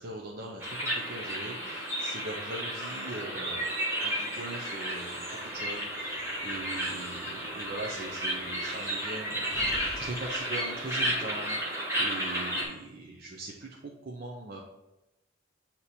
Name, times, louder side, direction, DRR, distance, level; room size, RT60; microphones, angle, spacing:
voice 1, 0.0-5.3 5.5-9.7 9.9-14.6, right 2 dB, 50° right, -1 dB, 0.6 m, -41 dB
sound 1, 0.6-12.6, equal, 15° right, 1.2 m, -33 dB
Slam, 5.5-11.1, equal, 20° left, 1.0 m, -51 dB
8.2 x 2.9 x 4.1 m, 0.94 s
head